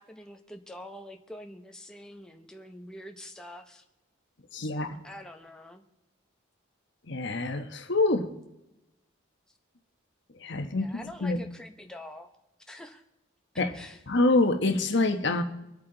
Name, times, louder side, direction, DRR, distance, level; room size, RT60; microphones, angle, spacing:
voice 1, 0.0-3.8 4.6-5.8 10.8-12.3 12.7-13.0 13.7-14.0, left 1 dB, 5° left, 3 dB, 0.8 m, -45 dB
voice 2, 4.5-5.0 7.1-8.3 10.4-10.9 11.2-11.4 13.6-13.7 14.1-15.4, left 2 dB, 55° left, 7 dB, 1.1 m, -26 dB
24.0 x 8.7 x 3.9 m, 0.92 s
head